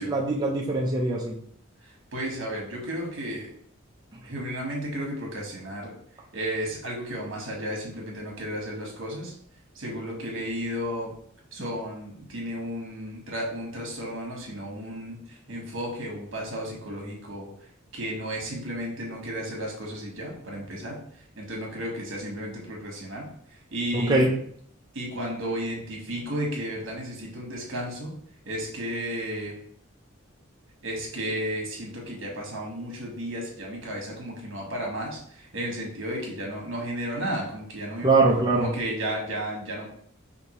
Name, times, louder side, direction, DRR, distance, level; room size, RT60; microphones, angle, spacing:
voice 1, 0.0-1.4 23.9-24.3 38.0-38.7, right 3 dB, 20° right, -3 dB, 0.5 m, -22 dB
voice 2, 1.8-3.5 4.2-5.9 6.3-9.3 9.7-11.1 11.5-17.5 17.9-21.0 21.4-23.3 23.7-24.3 24.9-28.1 28.4-29.5 30.8-38.1 38.5-39.9, equal, 70° right, -1 dB, 1.3 m, -33 dB
5.2 x 2.6 x 3.0 m, 0.63 s
head